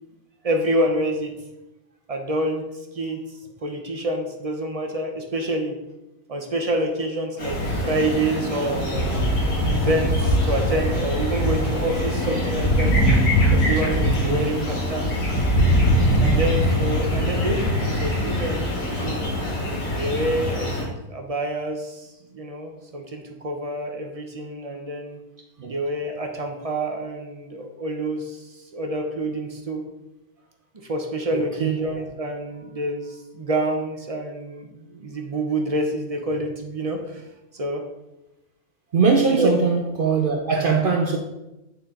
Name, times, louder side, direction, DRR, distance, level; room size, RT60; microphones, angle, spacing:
voice 1, 0.4-1.3 2.1-3.2 3.6-5.8 6.3-9.1 9.7-12.9 13.5-15.3 16.2-18.7 19.0-19.2 19.9-22.1 22.3-25.2 25.7-29.8 30.9-37.2 37.5-37.8 39.3-39.5, right 1 dB, 30° right, 0.7 m, -27 dB
sound 1, 7.4-20.8, equal, 80° left, 3.1 m, -22 dB
voice 2, 14.2-14.7 17.0-17.2 25.6-25.7 31.3-31.8 38.9-41.2, right 5 dB, 70° right, 0.5 m, -22 dB
8.2 x 4.3 x 3.8 m
omnidirectional pair, 1.6 m